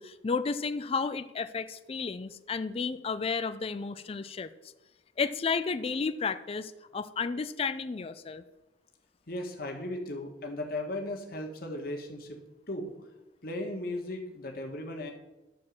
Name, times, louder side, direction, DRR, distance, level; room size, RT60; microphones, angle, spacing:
voice 1, 0.0-4.5 5.2-8.4, left 5 dB, 30° left, 11 dB, 0.4 m, -32 dB
voice 2, 9.3-12.4 12.7-12.9 13.4-15.1, left 1 dB, 55° left, 2 dB, 1.6 m, -36 dB
12.0 x 4.6 x 7.4 m, 1.0 s
head